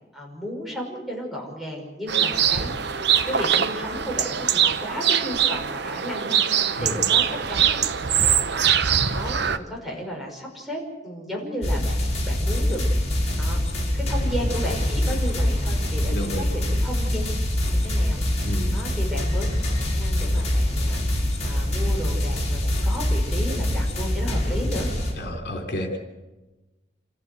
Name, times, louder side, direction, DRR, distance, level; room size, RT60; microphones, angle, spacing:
voice 1, 0.1-7.9 8.2-12.8 13.4-13.6 13.9-17.2 17.7-19.5 19.8-24.9, equal, ahead, -2 dB, 6.0 m, -34 dB
sound 1, 2.1-9.6, right 8 dB, 65° right, 1.0 m, -22 dB
sound 2, 11.6-25.1, left 1 dB, 40° left, 5.8 m, -24 dB
voice 2, 16.1-16.4 18.4-18.7 25.2-26.0, left 1 dB, 60° left, 4 dB, 3.6 m, -30 dB
27.5 x 15.0 x 8.1 m, 1.1 s
head